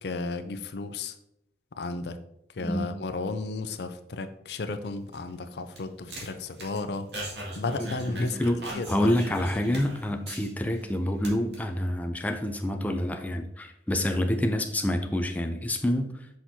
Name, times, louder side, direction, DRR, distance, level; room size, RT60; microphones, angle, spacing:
voice 1, 0.0-1.2 1.8-2.2 2.5-7.1 7.5-9.1, left 3 dB, 70° left, 9 dB, 0.5 m, -34 dB
sound 1, 4.9-10.8 11.1-11.5, right 1 dB, 75° right, 2.0 m, -39 dB
voice 2, 8.9-16.1, left 1 dB, 10° left, 4 dB, 0.4 m, -27 dB
6.3 x 5.9 x 2.7 m, 0.82 s
head